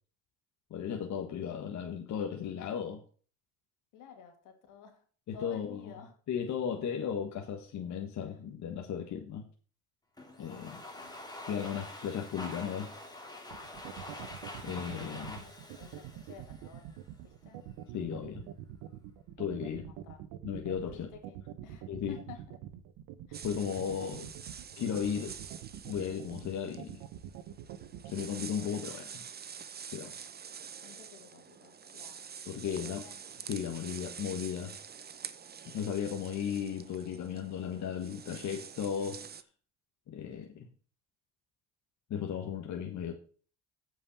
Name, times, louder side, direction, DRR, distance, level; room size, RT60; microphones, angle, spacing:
voice 1, 0.7-3.0 5.3-5.8 6.3-9.4 10.4-10.8 11.5-12.9 14.6-15.4 17.9-18.5 19.4-19.9 20.4-21.1 21.9-22.1 23.4-24.3 24.8-25.4 25.8-27.0 28.0-29.2 29.9-30.1 32.5-33.1 33.5-34.8 35.7-39.2 40.1-40.7 42.1-43.1, left 8 dB, 60° left, 1.5 m, -35 dB
voice 2, 3.9-5.0 5.3-6.1 10.9-11.2 14.7-17.6 19.9-20.3 20.9-22.6 23.3-23.5 23.9-24.3 30.8-32.4 32.7-33.2 36.1-36.4, left 7 dB, 80° left, 2.4 m, -53 dB
Domestic sounds home sounds, 10.2-17.1, left 1 dB, 10° left, 2.8 m, -46 dB
sound 1, 13.5-28.2, right 12 dB, 90° right, 1.1 m, -45 dB
sound 2, 23.3-39.4, right 7 dB, 30° right, 0.8 m, -47 dB
8.6 x 5.6 x 7.1 m
cardioid pair, 95°, 31 cm